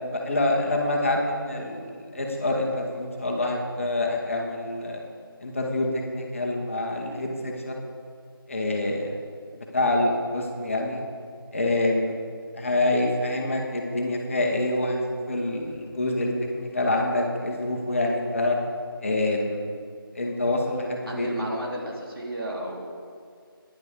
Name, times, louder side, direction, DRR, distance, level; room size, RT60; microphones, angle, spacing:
voice 1, 0.0-5.0 5.4-7.8 8.5-9.2 9.7-11.0 11.5-12.1 12.5-18.6 19.0-19.6 20.1-21.5, left 2 dB, 35° left, 0 dB, 1.2 m, -26 dB
voice 2, 21.0-22.9, right 1 dB, 70° right, -3 dB, 3.3 m, -33 dB
16.0 x 10.0 x 3.7 m, 2.1 s
figure-of-eight pair, 170°, 12 cm